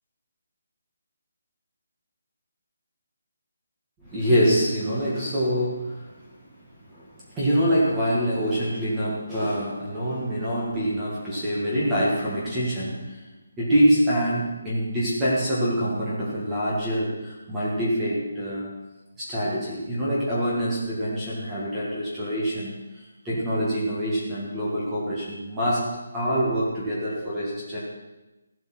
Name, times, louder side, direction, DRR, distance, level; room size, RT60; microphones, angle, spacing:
voice 1, 4.0-6.3 6.9-13.2 13.6-18.7 19.2-27.8, equal, 10° right, -9 dB, 1.9 m, -25 dB
15.0 x 8.0 x 6.0 m, 1.1 s
hypercardioid pair, 175°, 0 cm